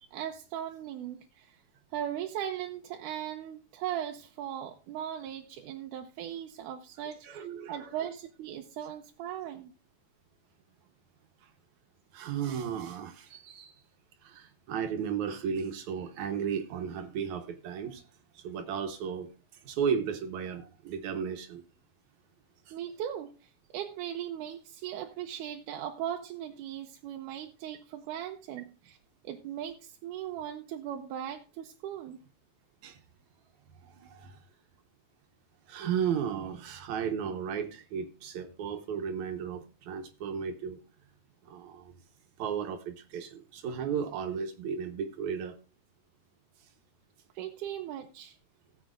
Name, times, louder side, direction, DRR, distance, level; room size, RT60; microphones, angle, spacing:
voice 1, 0.1-1.6 1.9-7.4 7.7-9.7 22.7-29.0 29.2-32.2 47.4-48.4, right 10 dB, 90° right, 2.2 m, -38 dB
voice 2, 7.2-7.9 12.1-13.7 14.2-18.0 18.4-19.3 19.5-21.6 22.7-22.8 32.8-33.0 33.8-34.4 35.7-40.8 41.5-41.9 42.4-45.6, right 7 dB, 75° right, 2.3 m, -34 dB
18.5 x 7.3 x 2.5 m
omnidirectional pair, 3.6 m